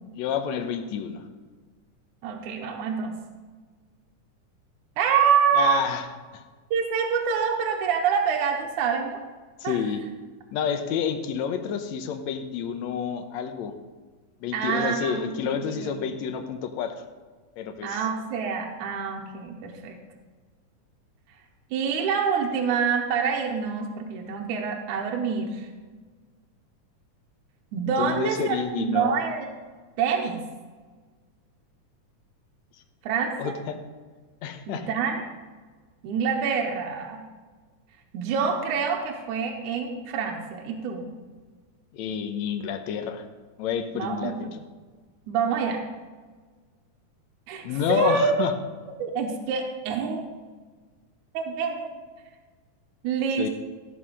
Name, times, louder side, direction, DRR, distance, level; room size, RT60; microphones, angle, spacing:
voice 1, 0.1-1.2 5.6-6.1 6.3-6.4 9.6-10.0 10.5-13.7 14.4-17.0 17.6-18.0 28.0-29.2 33.4-33.8 34.4-34.9 41.9-43.3 43.6-44.5 47.6-48.5 53.4-53.5, left 7 dB, 70° left, 7 dB, 2.0 m, -29 dB
voice 2, 2.2-3.1 5.0-5.8 6.7-9.2 9.6-9.8 14.5-15.9 17.8-20.0 21.7-25.7 27.7-29.5 30.0-30.4 33.0-33.5 34.7-35.2 36.0-37.2 38.1-41.1 43.9-44.4 45.3-45.8 47.5-48.3 49.0-50.2 51.3-51.9 53.0-53.5, right 6 dB, 75° right, 2 dB, 2.3 m, -26 dB
15.0 x 5.6 x 6.2 m, 1.4 s
omnidirectional pair, 3.7 m